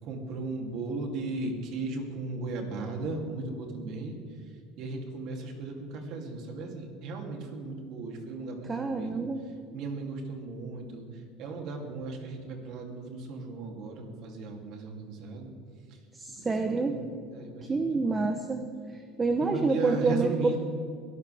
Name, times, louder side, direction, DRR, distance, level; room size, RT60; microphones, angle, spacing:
voice 1, 0.0-4.1 4.8-9.2 9.7-11.1 11.4-15.5 16.4-17.0 17.3-18.1 19.4-20.6, right 3 dB, 55° right, 2 dB, 3.1 m, -36 dB
voice 2, 8.6-9.4 16.1-17.0 17.7-20.6, right 3 dB, 20° right, 5 dB, 1.0 m, -28 dB
22.5 x 14.0 x 3.6 m, 2.2 s
cardioid pair, 140°, 0 cm